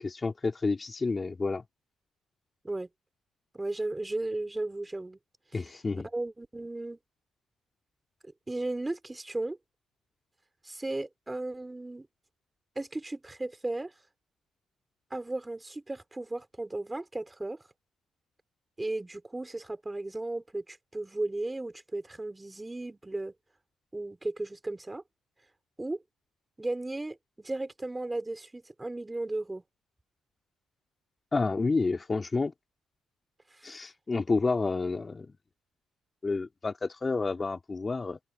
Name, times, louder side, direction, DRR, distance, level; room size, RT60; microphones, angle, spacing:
voice 1, 0.0-1.6 5.5-6.1 31.3-32.5 33.6-35.3 36.2-38.2, left 3 dB, 30° left, 3.4 m, -29 dB
voice 2, 3.5-5.2 5.5-5.6 6.1-7.0 8.5-9.6 10.6-12.1 12.8-13.9 15.1-17.6 18.8-23.3 23.9-25.0 25.8-26.0 26.6-29.6 33.5-33.8, right 2 dB, 15° right, 4.5 m, -35 dB
open air
cardioid pair, 90°, 0 cm